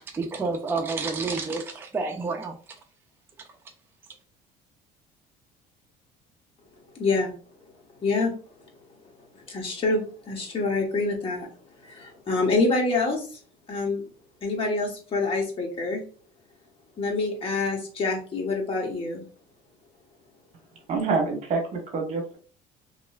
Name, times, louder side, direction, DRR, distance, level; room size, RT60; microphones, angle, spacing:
voice 1, 0.0-2.6, right 4 dB, 15° right, 3 dB, 0.4 m, -29 dB
voice 2, 7.0-7.3 8.0-8.3 9.3-11.5 11.8-13.3 13.7-14.0 14.4-16.0 17.0-19.2, left 3 dB, 35° left, 0 dB, 1.1 m, -26 dB
voice 3, 20.9-22.4, right 4 dB, 45° right, 2 dB, 1.1 m, -26 dB
3.0 x 2.9 x 2.3 m, 0.39 s
cardioid pair, 125°, 17 cm